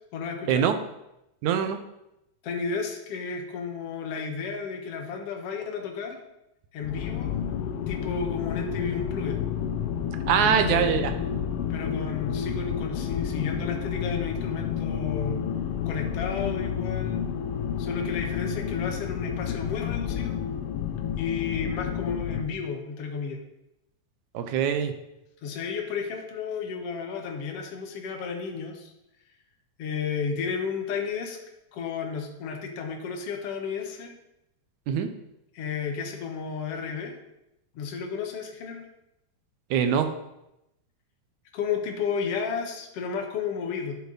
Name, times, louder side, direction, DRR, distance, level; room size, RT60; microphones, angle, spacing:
voice 1, 0.1-0.7 2.4-6.2 6.7-7.4 7.9-9.4 10.4-11.1 11.7-15.4 15.9-17.2 17.8-20.4 21.2-23.4 25.4-28.9 29.8-31.4 31.7-34.2 35.5-37.2 37.8-38.8 41.5-44.0, left 5 dB, 60° left, 3 dB, 2.2 m, -32 dB
voice 2, 1.4-1.8 10.3-11.1 24.3-24.9 34.9-35.1 39.7-40.1, right 8 dB, 80° right, 8 dB, 2.2 m, -23 dB
sound 1, 6.8-22.5, left 8 dB, 85° left, 1.3 m, -30 dB
12.0 x 6.9 x 4.1 m, 0.87 s
omnidirectional pair, 3.4 m